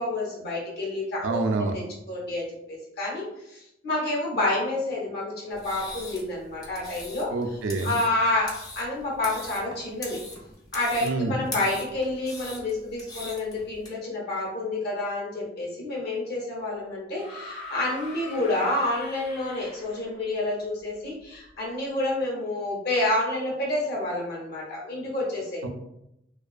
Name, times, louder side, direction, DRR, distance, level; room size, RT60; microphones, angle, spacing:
voice 1, 0.0-1.4 1.7-7.3 7.8-10.2 10.7-25.7, left 2 dB, 55° left, -3 dB, 0.8 m, -29 dB
voice 2, 1.2-1.7 7.3-7.9 11.0-11.4 25.6-25.7, right 3 dB, 85° right, 4 dB, 0.4 m, -27 dB
sound 1, 5.5-13.9, left 2 dB, 20° left, 0.5 m, -41 dB
sound 2, 17.2-20.2 21.5-21.6, left 1 dB, 80° left, 1.0 m, -42 dB
2.5 x 2.3 x 2.3 m, 0.83 s
head